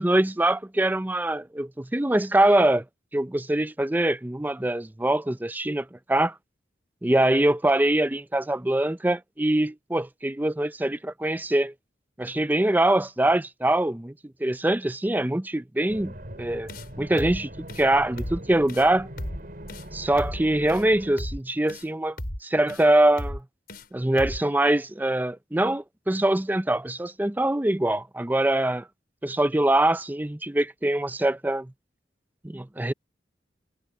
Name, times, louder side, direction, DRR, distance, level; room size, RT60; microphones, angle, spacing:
voice 1, 0.0-2.8 3.1-6.3 7.0-11.7 12.2-14.1 14.4-16.1 16.4-16.7 17.0-19.1 19.9-22.2 22.4-23.4 23.9-28.9 29.2-31.7 32.4-32.9, right 1 dB, 10° right, 0.5 m, -23 dB
sound 1, 15.9-21.1, right 1 dB, 55° right, 5.6 m, -41 dB
sound 2, 16.7-16.9 17.2-17.4 17.7-17.9 18.2-18.4 18.7-18.9 19.2-19.4 19.7-19.9 20.2-20.4 20.7-20.8 21.2-21.4 21.7-21.9 22.2-22.4 22.7-22.9 23.2-23.4 23.7-23.9 24.2-24.4, equal, 60° left, 6.1 m, -34 dB
head